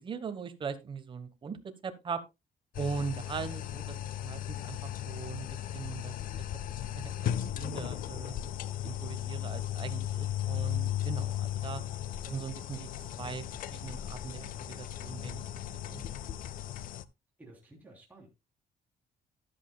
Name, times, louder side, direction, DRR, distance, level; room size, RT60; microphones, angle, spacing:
voice 1, 0.0-2.2 2.8-4.0 4.2-5.5 5.7-6.1 6.9-7.1 7.4-8.4 8.8-11.8 12.3-12.9 13.2-13.4 13.7-15.4 15.8-16.1, right 6 dB, 30° right, 1.2 m, -40 dB
sound 1, 2.7-17.0, left 11 dB, 60° left, 0.6 m, -36 dB
voice 2, 17.4-18.3, right 2 dB, 10° right, 3.2 m, -53 dB
13.5 x 11.0 x 2.3 m
cardioid pair, 150°, 16 cm